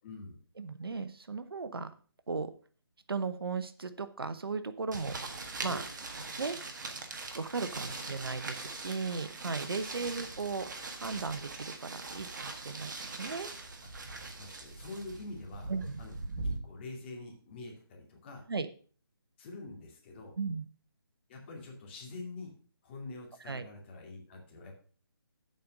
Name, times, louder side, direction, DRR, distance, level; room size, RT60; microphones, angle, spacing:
voice 1, 0.0-0.4 5.7-5.8 7.8-8.0 9.8-10.1 14.4-15.7 16.0-16.1 16.4-18.5 19.4-20.4 21.3-22.5 22.8-24.7, left 3 dB, 30° left, 1 dB, 2.5 m, -46 dB
voice 2, 0.6-1.9 2.3-2.5 3.1-5.2 5.6-5.8 6.4-6.6 7.3-10.7 11.0-13.5 15.7-16.0 18.5-18.7 20.4-20.7 23.5-23.7, right 4 dB, 70° right, 11 dB, 1.0 m, -36 dB
sound 1, 4.9-16.6, right 3 dB, 50° right, 1.6 m, -41 dB
7.8 x 5.4 x 6.2 m, 0.41 s
figure-of-eight pair, 155°, 13 cm